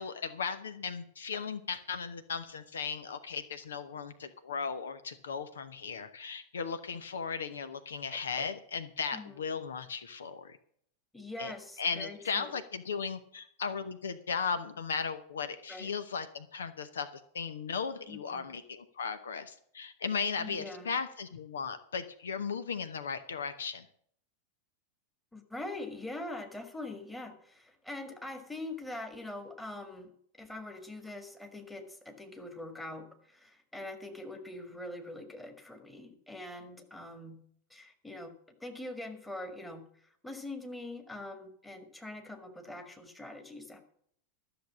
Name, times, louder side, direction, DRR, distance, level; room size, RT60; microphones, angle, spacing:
voice 1, 0.0-10.6 11.4-11.5 11.8-23.9, left 5 dB, 65° left, 12 dB, 0.8 m, -36 dB
voice 2, 8.1-8.5 9.1-9.4 11.1-12.6 15.7-15.9 18.1-18.5 20.4-20.9 25.3-30.1 30.4-37.4 37.7-38.3 38.6-43.8, left 2 dB, 5° left, 5 dB, 1.8 m, -43 dB
13.0 x 6.9 x 7.3 m, 0.65 s
figure-of-eight pair, 90°, 0 cm